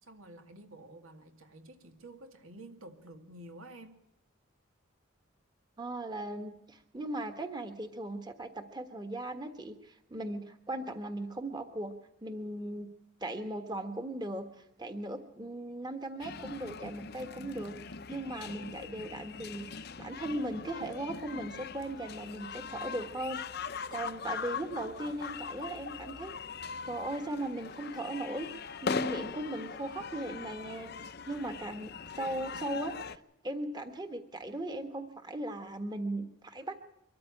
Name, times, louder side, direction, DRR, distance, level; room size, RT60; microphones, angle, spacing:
voice 1, 0.0-4.0, right 1 dB, 85° right, 2.4 m, -50 dB
voice 2, 5.8-11.9 12.2-12.9 13.2-26.4 26.8-36.8, right 1 dB, 20° right, 1.4 m, -38 dB
sound 1, 16.2-33.2, left 5 dB, 50° left, 0.7 m, -41 dB
23.5 x 14.0 x 8.6 m
head